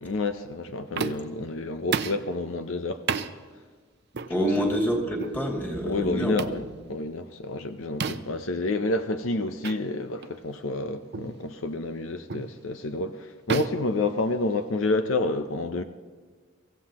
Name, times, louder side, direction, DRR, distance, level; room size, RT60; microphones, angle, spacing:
voice 1, 0.0-3.0 4.4-4.7 5.8-15.8, left 2 dB, 75° left, 9 dB, 0.7 m, -29 dB
Hand hits the solid surface, 1.0-1.4 1.9-2.3 3.1-3.3 4.1-4.3 5.2-5.4 6.4-6.6 8.0-8.4 9.6-9.8 10.2-10.4 11.1-11.4 12.3-12.5 13.5-14.7, right 5 dB, 55° right, 0.6 m, -31 dB
voice 2, 4.3-6.4, equal, 10° left, -1 dB, 2.6 m, -27 dB
24.5 x 16.0 x 3.0 m, 1.5 s
head